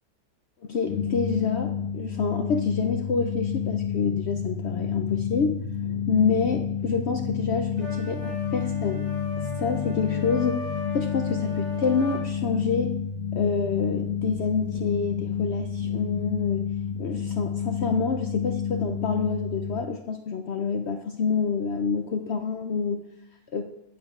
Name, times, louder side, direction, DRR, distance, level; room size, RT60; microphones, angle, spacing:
voice 1, 0.6-5.6 6.1-9.1 9.6-12.9 13.3-16.6 17.0-23.1 23.5-23.7, left 5 dB, 65° left, 5 dB, 0.7 m, -27 dB
sound 1, 0.8-19.8, left 7 dB, 85° left, 1.2 m, -30 dB
sound 2, 7.8-12.2, left 2 dB, 70° right, 4.7 m, -37 dB
15.5 x 7.3 x 2.4 m, 0.86 s
omnidirectional pair, 1.6 m